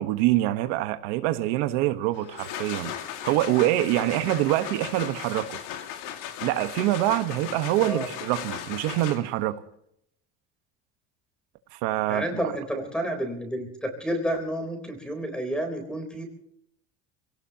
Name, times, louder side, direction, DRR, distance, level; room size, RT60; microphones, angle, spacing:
voice 1, 0.0-2.9 3.2-5.6 6.4-9.6 11.7-12.5, right 15 dB, 85° right, 1.4 m, -25 dB
sound 1, 2.1-9.5, left 10 dB, 70° left, 2.3 m, -37 dB
voice 2, 12.1-16.2, right 1 dB, 5° left, 3.7 m, -30 dB
27.5 x 17.5 x 2.9 m
cardioid pair, 170°, 32 cm